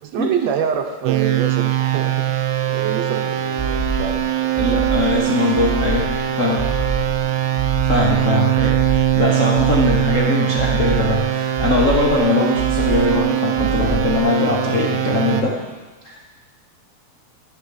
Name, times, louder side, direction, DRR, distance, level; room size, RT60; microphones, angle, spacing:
voice 1, 0.0-4.8, right 7 dB, 75° right, 5 dB, 1.9 m, -27 dB
sound 1, 1.0-15.4, right 12 dB, 90° right, 1.2 m, -21 dB
sound 2, 3.6-4.2 4.6-5.2 5.6-6.2 6.6-7.2 7.6-8.2 8.6-9.2 9.6-10.2 10.6-11.2 11.6-12.2 12.6-13.2 13.6-14.2, right 3 dB, 20° right, 1.0 m, -25 dB
voice 2, 4.6-6.1 6.4-6.6 7.9-15.6 16.0-16.3, left 3 dB, 65° left, -2 dB, 0.7 m, -21 dB
11.5 x 5.6 x 8.1 m, 1.3 s
omnidirectional pair, 3.4 m